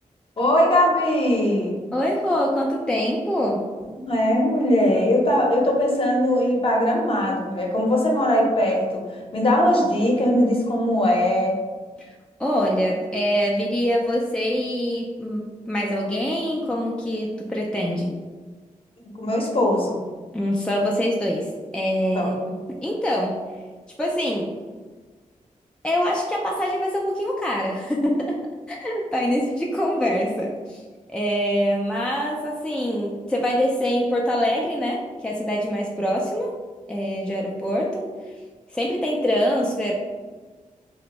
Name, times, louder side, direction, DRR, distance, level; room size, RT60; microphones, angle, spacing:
voice 1, 0.4-1.7 4.1-11.5 19.2-20.0 22.1-22.3, left 1 dB, 40° left, -1 dB, 0.7 m, -20 dB
voice 2, 1.9-3.7 12.1-12.2 12.4-18.2 20.3-23.5 24.0-24.5 25.8-30.8 31.1-36.5 36.9-38.3 38.7-39.9, equal, 5° left, -2 dB, 0.3 m, -24 dB
2.6 x 2.1 x 2.9 m, 1.4 s
cardioid pair, 45°, 15 cm